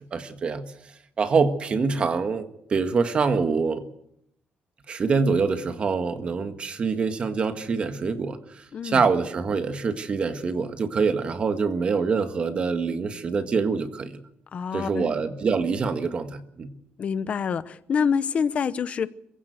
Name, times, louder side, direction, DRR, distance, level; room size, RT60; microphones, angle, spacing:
voice 1, 0.1-0.6 1.2-3.8 4.9-14.2 14.7-16.7, right 5 dB, 35° right, 1.6 m, -25 dB
voice 2, 8.7-9.1 14.5-15.1 17.0-19.1, left 6 dB, 40° left, 0.9 m, -26 dB
22.5 x 16.0 x 8.0 m
cardioid pair, 170°, 3 cm